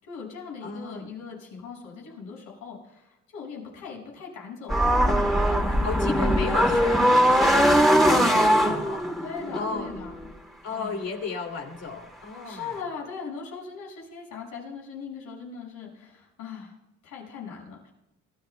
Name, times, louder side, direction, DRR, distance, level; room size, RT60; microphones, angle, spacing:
voice 1, 0.0-6.4 7.4-7.8 8.3-8.7 9.2-10.2 10.7-11.0 12.4-16.7 17.0-17.9, left 5 dB, 90° left, -2 dB, 6.2 m, -39 dB
voice 2, 0.6-1.1 5.8-9.0 9.5-9.9 10.6-12.8, left 4 dB, 55° left, 3 dB, 2.7 m, -34 dB
sound 1, 4.7-10.3, equal, ahead, 2.3 m, -21 dB
25.5 x 16.5 x 2.3 m, 0.96 s
cardioid pair, 90°, 30 cm